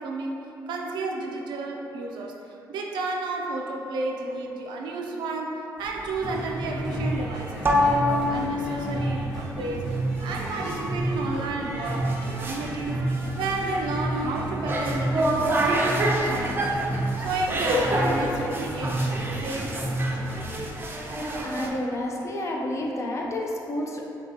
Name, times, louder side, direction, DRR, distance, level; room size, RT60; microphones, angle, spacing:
voice 1, 0.0-13.1 13.4-16.9 17.2-20.3, right 3 dB, 85° right, 0 dB, 0.5 m, -32 dB
sound 1, 5.8-21.7, equal, 30° right, 0.5 m, -28 dB
sound 2, 6.2-20.7, right 1 dB, 10° left, 1.4 m, -31 dB
voice 2, 21.4-24.0, left 1 dB, 40° left, -1 dB, 0.6 m, -30 dB
5.9 x 2.4 x 2.8 m, 3.0 s
cardioid pair, 90°, 8 cm